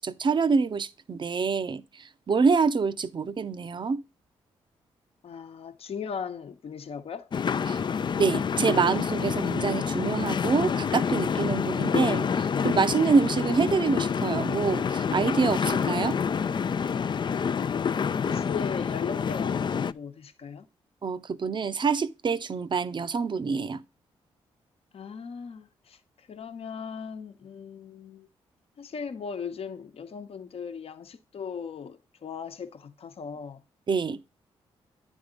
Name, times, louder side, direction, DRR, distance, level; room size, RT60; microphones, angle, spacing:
voice 1, 0.0-4.0 7.7-7.8 8.2-16.2 21.0-23.8 33.9-34.2, right 5 dB, 45° right, 0.7 m, -26 dB
voice 2, 5.2-7.3 17.3-20.7 24.9-28.3 28.8-33.6, left 6 dB, 60° left, 1.0 m, -38 dB
sound 1, 7.3-19.9, left 6 dB, 45° left, 0.4 m, -27 dB
9.6 x 3.6 x 5.1 m
supercardioid pair, 50°, 11 cm